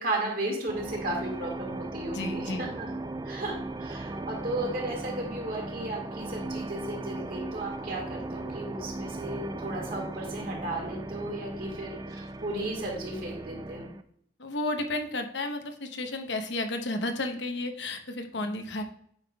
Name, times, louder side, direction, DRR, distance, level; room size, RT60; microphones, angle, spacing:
voice 1, 0.0-13.9 18.4-18.5, right 2 dB, 50° right, 0 dB, 1.9 m, -35 dB
sound 1, 0.7-14.0, right 2 dB, 20° right, 0.3 m, -37 dB
voice 2, 2.1-2.7 14.4-18.8, left 2 dB, 70° left, 5 dB, 0.9 m, -32 dB
8.9 x 5.5 x 2.3 m, 0.68 s
head